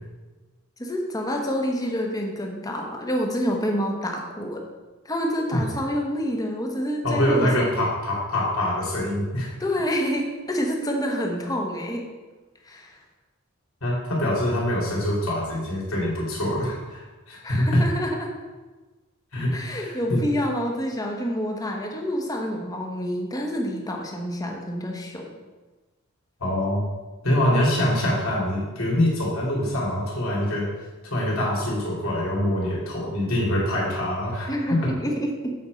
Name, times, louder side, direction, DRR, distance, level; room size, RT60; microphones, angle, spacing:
voice 1, 0.8-4.6 5.0-7.7 9.6-12.0 12.6-13.0 17.4-18.3 19.5-25.3 34.5-35.5, equal, 20° left, 1 dB, 1.2 m, -28 dB
voice 2, 7.0-9.5 13.8-17.8 19.3-20.2 26.4-26.9 27.2-30.7 31.0-34.8, left 1 dB, 80° left, -4 dB, 2.9 m, -24 dB
7.9 x 5.3 x 5.3 m, 1.2 s
head